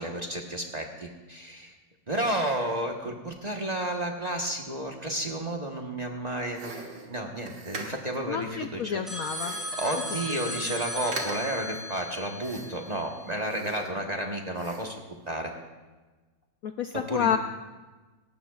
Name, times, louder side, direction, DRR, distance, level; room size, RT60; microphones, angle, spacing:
voice 1, 0.0-1.7 2.1-6.8 7.1-9.0 9.4-15.0 15.3-15.5 16.9-17.4, right 1 dB, 25° right, 1 dB, 1.0 m, -32 dB
sound 1, 6.5-8.2 9.3-9.8 10.2-10.3 10.5-10.8 11.1-11.6 12.4-12.9 13.4-14.2 14.5-15.0, right 3 dB, 75° right, 2.4 m, -41 dB
voice 2, 8.3-9.5 10.5-10.6 16.6-17.4, left 8 dB, 70° left, 7 dB, 0.8 m, -29 dB
sound 2, 9.1-13.4, equal, ahead, 2.8 m, -37 dB
18.5 x 18.0 x 2.4 m, 1.2 s
omnidirectional pair, 1.9 m